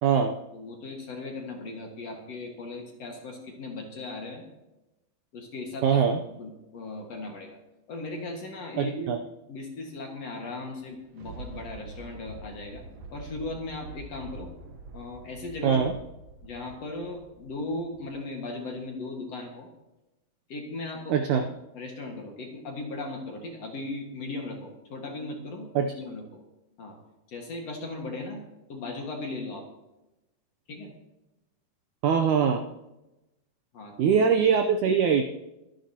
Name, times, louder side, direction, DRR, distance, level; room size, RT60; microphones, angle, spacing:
voice 1, 0.0-0.4 5.8-6.2 8.8-9.2 15.6-15.9 21.1-21.4 25.7-25.9 32.0-32.6 34.0-35.2, right 7 dB, 85° right, 6 dB, 1.7 m, -22 dB
voice 2, 0.5-4.4 5.3-6.1 6.4-7.6 7.9-9.1 9.5-12.8 13.1-14.5 14.9-16.0 16.4-19.7 20.5-25.7 26.0-26.4 26.8-27.0 27.3-28.4 28.7-29.7 30.7-30.9 33.7-34.2, left 2 dB, 50° left, 1 dB, 2.4 m, -37 dB
Thunder, 10.8-18.3 18.8-18.9, right 2 dB, 65° right, 1.7 m, -45 dB
23.5 x 10.5 x 2.9 m, 0.97 s
omnidirectional pair, 4.5 m